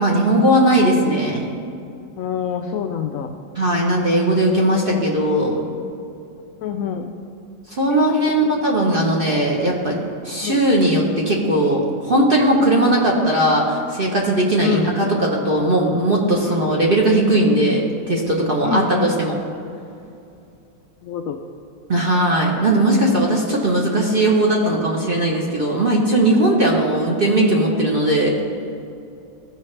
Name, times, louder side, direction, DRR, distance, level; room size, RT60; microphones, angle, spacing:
voice 1, 0.0-1.5 3.5-5.6 7.7-10.0 10.2-19.4 21.9-28.4, right 1 dB, 40° right, -2 dB, 0.9 m, -18 dB
voice 2, 2.2-3.3 4.8-5.0 6.6-7.1 7.9-8.3 10.4-10.6 14.6-14.9 18.6-19.1 21.1-21.3, left 8 dB, 85° left, 5 dB, 0.7 m, -26 dB
15.0 x 5.5 x 3.3 m, 2.5 s
omnidirectional pair, 2.0 m